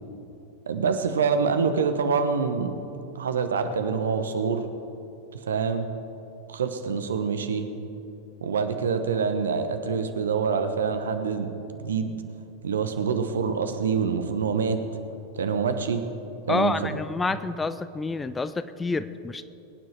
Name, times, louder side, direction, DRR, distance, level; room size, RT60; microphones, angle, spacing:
voice 1, 0.7-2.7 3.1-4.6 5.5-5.9 6.5-7.7 8.4-11.5 11.8-12.2 12.6-14.8 15.4-16.0 16.5-16.7, right 5 dB, 65° right, 8 dB, 1.1 m, -26 dB
voice 2, 16.5-19.4, left 3 dB, 10° left, 13 dB, 0.5 m, -28 dB
22.5 x 9.4 x 4.5 m, 2.8 s
figure-of-eight pair, 90°, 0 cm